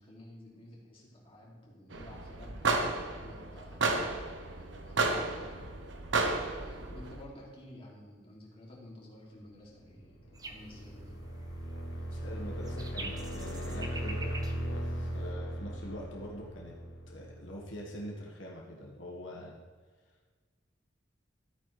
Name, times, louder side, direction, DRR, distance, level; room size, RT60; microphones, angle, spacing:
voice 1, 0.0-2.9 3.2-4.0 4.5-5.8 6.5-11.2, left 1 dB, 30° left, -5 dB, 2.7 m, -52 dB
sound 1, 1.9-7.2, right 3 dB, 70° right, 1.0 m, -33 dB
sound 2, 10.0-17.8, equal, 65° left, 1.3 m, -38 dB
sound 3, 10.3-15.3, right 2 dB, 20° right, 0.8 m, -46 dB
voice 2, 12.1-14.3 14.7-16.8 17.1-19.6, equal, 85° left, -2 dB, 1.6 m, -44 dB
13.5 x 9.0 x 3.4 m, 1.5 s
head